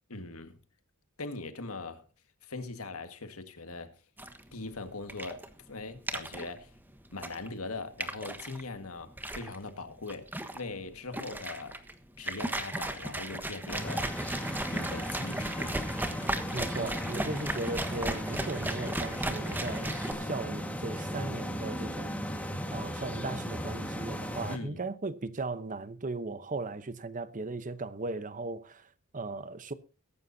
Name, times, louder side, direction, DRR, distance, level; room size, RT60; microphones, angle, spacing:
voice 1, 0.1-0.6 1.2-2.0 2.4-4.0 4.5-6.7 7.1-10.3 10.5-11.8 12.2-14.1 14.4-15.7 24.5-24.8, left 3 dB, 85° left, 1.8 m, -41 dB
sound 1, 4.2-20.1, right 1 dB, 10° right, 1.3 m, -36 dB
sound 2, 13.7-24.6, equal, 5° left, 1.7 m, -36 dB
voice 2, 16.5-22.2 22.7-29.7, right 3 dB, 35° right, 0.9 m, -37 dB
22.0 x 11.0 x 2.8 m
head